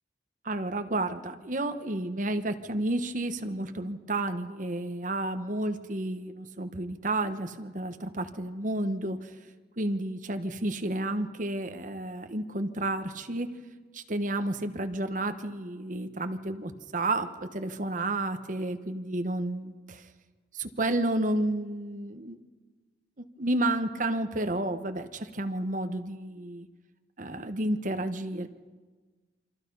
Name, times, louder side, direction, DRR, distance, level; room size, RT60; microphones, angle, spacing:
voice 1, 0.4-9.3 9.8-13.5 13.9-20.1 20.5-22.4 23.2-26.7 27.2-28.5, right 1 dB, 45° right, 7 dB, 1.3 m, -31 dB
28.0 x 24.5 x 5.6 m, 1.4 s
head